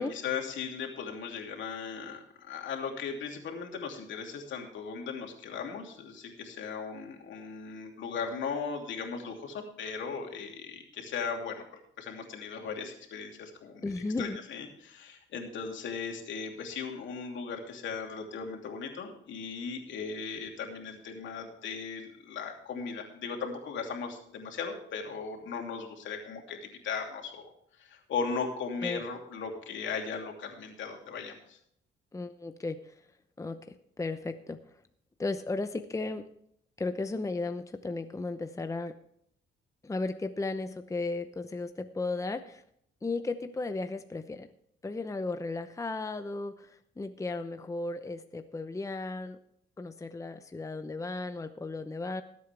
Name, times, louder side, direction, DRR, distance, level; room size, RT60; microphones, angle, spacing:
voice 1, 0.0-11.6 12.0-27.5 27.8-31.6, left 5 dB, 70° left, 2 dB, 2.8 m, -37 dB
voice 2, 13.8-14.4 28.8-29.0 32.1-32.8 33.4-33.6 34.0-34.6 35.2-36.2 36.8-39.0 39.8-42.6 43.0-44.5 44.8-49.4 49.8-52.2, left 3 dB, 15° left, 9 dB, 0.8 m, -35 dB
19.0 x 8.4 x 3.4 m, 0.71 s
cardioid pair, 90°, 20 cm